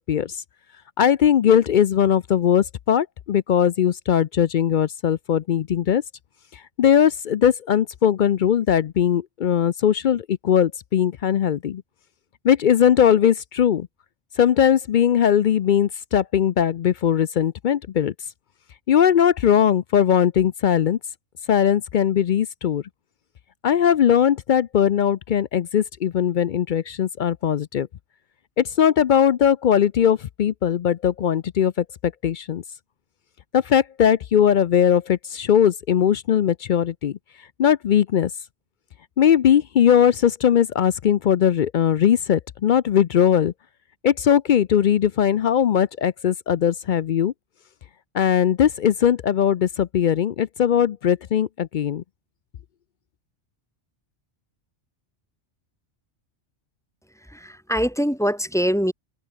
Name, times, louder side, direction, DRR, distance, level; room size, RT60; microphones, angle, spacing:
voice 1, 1.0-6.0 6.8-11.8 12.4-13.9 14.4-18.1 18.9-21.0 21.5-22.8 23.6-27.9 28.6-31.8 32.2-32.6 33.5-37.2 37.6-38.3 39.2-43.5 44.0-47.3 48.1-52.0, left 9 dB, 60° left, 0.5 m, -19 dB
voice 2, 57.2-58.9, equal, ahead, 3.1 m, -23 dB
omnidirectional pair, 1.2 m